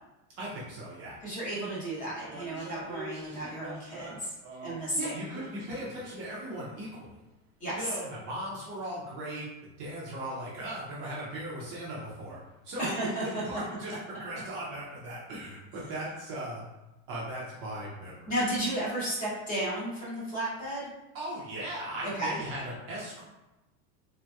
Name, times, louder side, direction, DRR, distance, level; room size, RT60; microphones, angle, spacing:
voice 1, 0.4-1.2 4.9-7.1 7.8-12.4 12.6-16.6 17.1-18.3 21.1-23.2, right 1 dB, 30° right, -6 dB, 0.5 m, -38 dB
sound 1, 1.1-1.3 1.6-4.9 5.3-6.2 6.5-6.6 7.3-7.4, right 2 dB, 85° right, 1.0 m, -45 dB
voice 2, 1.2-4.3 4.6-5.3 7.6-8.0 12.8-13.4 18.3-20.9 22.1-22.3, right 1 dB, 20° left, -7 dB, 0.7 m, -33 dB
3.3 x 2.8 x 2.2 m, 1.0 s
supercardioid pair, 180°, 41 cm